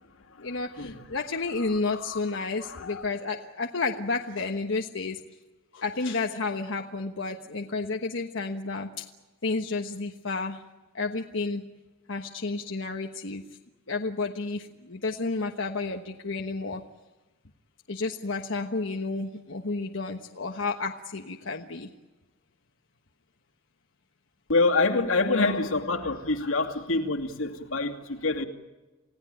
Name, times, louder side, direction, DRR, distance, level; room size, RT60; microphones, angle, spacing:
voice 1, 0.4-5.2 5.7-9.0 9.4-10.6 10.9-11.6 12.1-13.4 13.9-16.8 17.9-21.9 25.3-25.5, left 3 dB, 65° left, 3 dB, 1.3 m, -31 dB
voice 2, 1.6-2.2 2.6-3.0 24.5-28.4, left 3 dB, 90° left, 3 dB, 2.6 m, -26 dB
29.5 x 17.0 x 9.2 m, 1.2 s
head